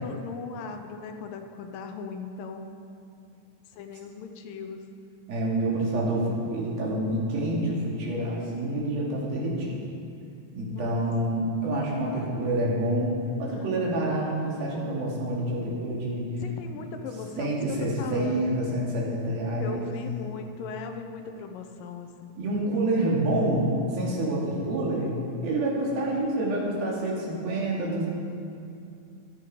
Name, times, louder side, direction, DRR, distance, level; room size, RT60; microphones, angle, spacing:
voice 1, 0.0-2.8 3.7-4.9 10.6-11.1 13.5-14.2 16.4-17.5 18.0-18.6 19.6-22.4 25.5-26.1, left 5 dB, 75° left, 5 dB, 2.4 m, -39 dB
voice 2, 5.3-9.8 10.5-16.3 16.7-16.8 17.4-19.9 22.4-25.1 25.4-28.1, right 1 dB, 85° right, -4 dB, 4.4 m, -27 dB
14.5 x 13.0 x 5.0 m, 2.5 s
omnidirectional pair, 4.1 m